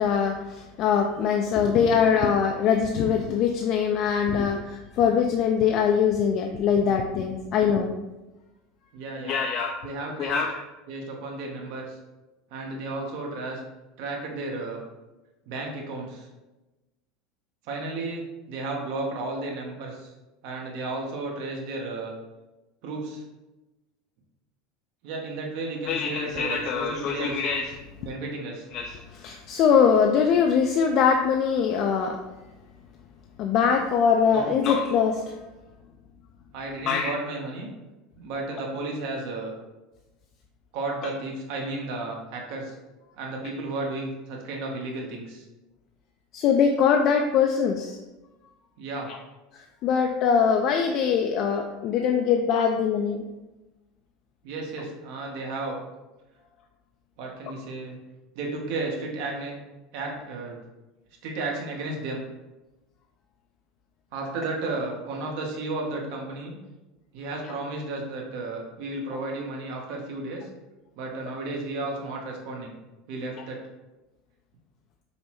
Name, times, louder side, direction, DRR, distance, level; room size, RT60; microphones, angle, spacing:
voice 1, 0.0-7.9 9.2-9.8 10.2-10.5 25.9-27.7 28.7-32.2 33.4-35.3 36.9-37.1 46.3-48.0 49.1-49.2 49.5-53.2, left 7 dB, 50° left, 3 dB, 0.3 m, -23 dB
voice 2, 8.9-9.4 9.8-10.4 10.9-12.0 12.5-13.6 14.0-14.8 15.5-16.3 17.6-20.1 20.4-22.1 22.8-23.2 25.0-27.4 28.0-28.7 34.3-34.6 36.5-37.7 38.2-39.5 40.7-42.7 43.2-45.4 48.8-49.1 54.4-55.8 57.2-58.0 58.3-59.5 59.9-60.6 61.2-62.2 64.1-66.5 67.1-70.5 71.0-72.7 73.1-73.6, right 2 dB, 65° right, 0 dB, 0.9 m, -33 dB
5.3 x 2.1 x 3.0 m, 1.1 s
supercardioid pair, 120°, 0 cm